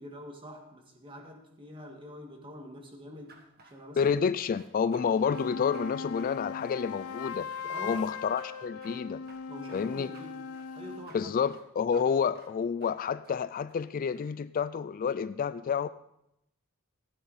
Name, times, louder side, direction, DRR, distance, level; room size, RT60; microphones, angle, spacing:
voice 1, 0.0-3.4 3.6-4.1 7.7-8.1 9.5-10.4 10.8-11.3, equal, 25° right, 2 dB, 1.8 m, -46 dB
sound 1, 3.3-4.1 4.4-5.1 5.3-5.5 5.7-5.9 6.2-7.2 7.5-7.6 7.9-8.1 8.4-8.5 8.8-8.9 9.3-9.9 10.1-10.3 10.5-11.2 11.5-11.6 11.9-12.0 12.4-12.5 12.8-12.9 13.2-13.4 13.7-14.3, right 3 dB, 45° right, 1.6 m, -55 dB
voice 2, 4.0-9.2 9.7-10.1 11.1-15.9, left 6 dB, 40° left, 14 dB, 0.3 m, -29 dB
sound 2, 4.9-11.1, left 5 dB, 80° left, 0.6 m, -39 dB
14.5 x 9.5 x 4.1 m, 0.80 s
head